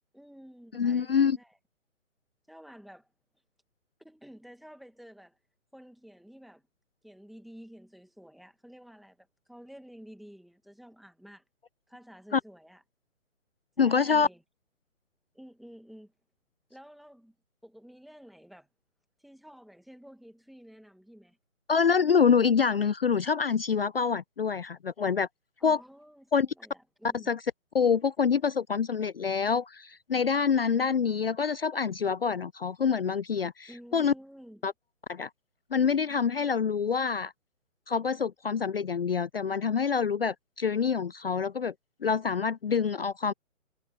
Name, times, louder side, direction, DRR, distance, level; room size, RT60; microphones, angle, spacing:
voice 1, 0.1-1.6 2.5-3.1 4.0-5.4 5.7-6.6 7.0-11.4 11.9-12.8 13.8-14.4 15.3-16.1 16.7-17.3 17.6-18.7 19.2-21.4 25.6-27.3 33.7-34.6, equal, ahead, 0.9 m, -51 dB
voice 2, 0.7-1.4 12.3-12.4 13.8-14.3 21.7-25.3 25.6-25.8 26.3-26.5 27.3-27.4 27.7-34.1 34.6-34.7 35.1-35.3 35.7-37.3 37.9-41.7 42.0-43.3, left 6 dB, 45° left, 0.5 m, -26 dB
hypercardioid pair, 160°, 41 cm